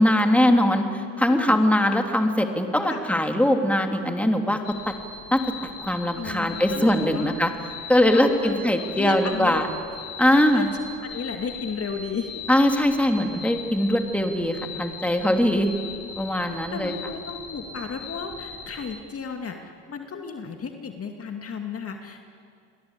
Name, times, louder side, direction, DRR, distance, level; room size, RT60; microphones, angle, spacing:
voice 1, 0.0-4.6 5.3-5.4 5.8-7.5 7.9-9.7 10.2-10.7 12.5-15.7 16.2-16.9, left 1 dB, 5° left, 4 dB, 3.1 m, -21 dB
voice 2, 2.8-3.2 6.2-7.4 8.1-8.7 8.9-9.6 10.3-10.7 11.0-12.4 16.5-22.2, left 5 dB, 40° left, 4 dB, 2.4 m, -34 dB
sound 1, 4.6-18.9, left 4 dB, 75° left, 6.8 m, -40 dB
29.5 x 22.5 x 8.4 m, 2.4 s
hypercardioid pair, 75°, 38 cm